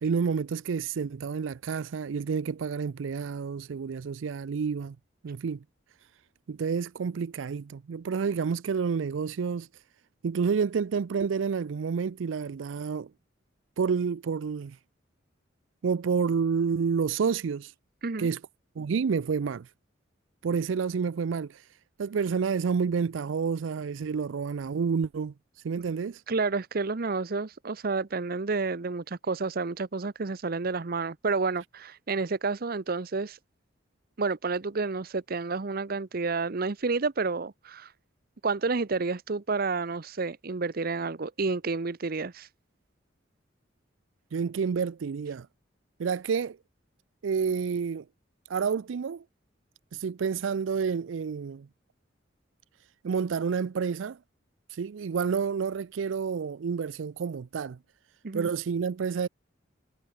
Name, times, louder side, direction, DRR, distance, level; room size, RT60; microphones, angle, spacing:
voice 1, 0.0-5.0 5.2-5.6 6.5-9.7 10.2-13.1 13.8-14.8 15.8-17.7 18.2-18.4 18.8-19.7 20.4-21.6 22.0-25.3 25.6-26.2 44.3-45.5 46.0-46.6 47.2-48.0 48.5-49.2 49.9-51.7 53.0-54.2 54.7-57.8 58.3-59.3, right 6 dB, 80° right, 0.4 m, -29 dB
voice 2, 26.3-33.4 34.2-37.9 38.4-42.5 58.2-58.5, right 4 dB, 50° right, 0.7 m, -30 dB
head